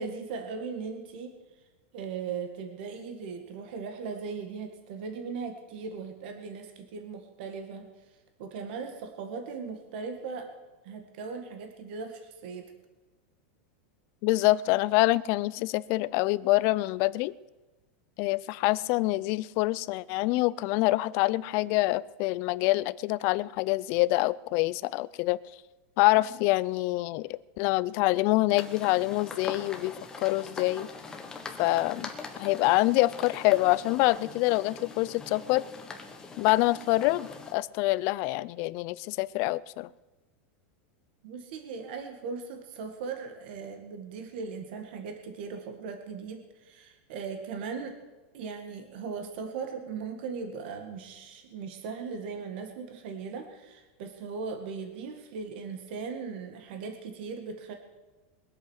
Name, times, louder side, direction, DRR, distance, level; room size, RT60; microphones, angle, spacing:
voice 1, 0.0-1.3 1.9-7.9 8.4-10.5 10.8-12.7 41.2-48.0 48.3-57.7, right 5 dB, 55° right, 6 dB, 1.9 m, -38 dB
voice 2, 14.2-17.3 18.2-25.4 26.0-30.9 31.6-32.1 32.4-35.6 36.4-39.9, left 19 dB, 40° left, 18 dB, 0.4 m, -26 dB
sound 1, 28.5-37.5, left 4 dB, 10° left, 1.3 m, -42 dB
22.0 x 8.4 x 6.4 m, 1.2 s
supercardioid pair, 160°, 6 cm